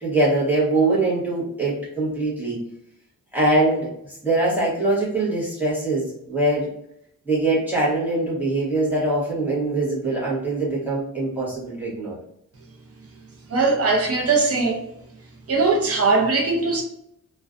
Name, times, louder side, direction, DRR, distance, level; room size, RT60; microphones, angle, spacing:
voice 1, 0.0-2.6 3.3-3.9 4.2-6.7 7.3-12.2, right 2 dB, 5° right, -8 dB, 0.9 m, -22 dB
voice 2, 13.5-14.8 15.5-16.8, right 3 dB, 45° right, 0 dB, 0.6 m, -20 dB
2.4 x 2.2 x 2.4 m, 0.76 s
wide cardioid pair, 175°, 33 cm